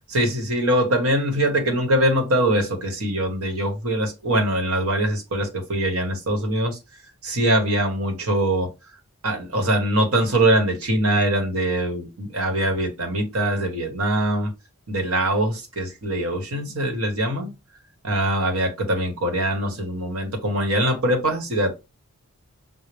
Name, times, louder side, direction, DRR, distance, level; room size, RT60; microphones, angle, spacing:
voice 1, 0.1-6.8 7.2-8.7 9.2-14.5 14.9-17.5 18.0-21.8, right 1 dB, 65° right, 1.2 m, -22 dB
5.5 x 2.1 x 3.3 m
head